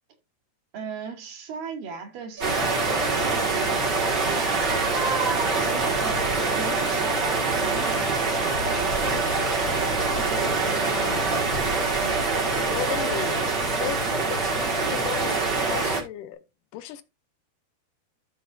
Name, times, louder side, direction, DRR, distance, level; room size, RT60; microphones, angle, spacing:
voice 1, 0.7-3.9 4.3-4.7 5.5-9.0 10.0-11.0 12.0-12.3, right 5 dB, 60° right, 3.7 m, -38 dB
sound 1, 2.4-16.0, right 3 dB, 40° right, 1.6 m, -25 dB
sound 2, 2.4-15.9, right 1 dB, 80° right, 6.7 m, -39 dB
voice 2, 10.7-11.3 12.7-14.4 14.8-16.4 16.7-17.0, left 10 dB, 85° left, 1.8 m, -35 dB
13.0 x 6.5 x 2.6 m
omnidirectional pair, 4.7 m